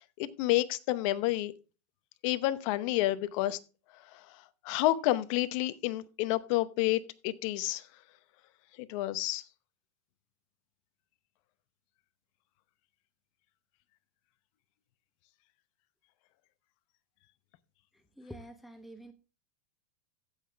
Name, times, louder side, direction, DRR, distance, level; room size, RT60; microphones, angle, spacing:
voice 1, 0.2-1.5 2.2-3.6 4.1-4.2 4.6-7.8 8.8-9.4, left 16 dB, 55° left, 14 dB, 0.9 m, -29 dB
voice 2, 18.2-19.1, equal, ahead, 7 dB, 0.9 m, -47 dB
15.5 x 5.8 x 3.4 m, 0.31 s
hypercardioid pair, 125°, 20 cm